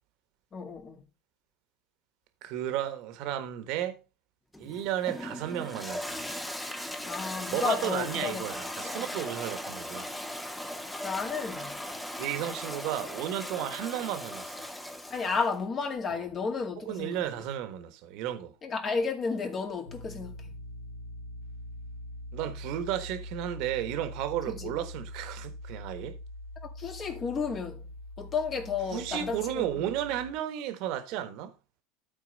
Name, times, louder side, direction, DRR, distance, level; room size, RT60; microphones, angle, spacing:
voice 1, 0.5-1.0 7.1-8.5 8.8-9.1 11.0-11.8 15.1-17.4 18.6-20.5 24.5-24.7 26.6-27.8 28.2-29.9, left 5 dB, 35° left, 2.2 m, -32 dB
voice 2, 2.4-4.0 4.6-6.2 7.5-10.1 12.2-14.6 16.1-16.2 16.8-18.5 22.3-26.2 28.9-31.5, right 11 dB, 60° right, 1.4 m, -33 dB
Toilet flush, 4.5-15.6, left 1 dB, 5° left, 1.0 m, -38 dB
sound 1, 19.9-30.3, left 1 dB, 80° left, 3.6 m, -43 dB
13.0 x 4.4 x 4.0 m
hypercardioid pair, 90°, 0 cm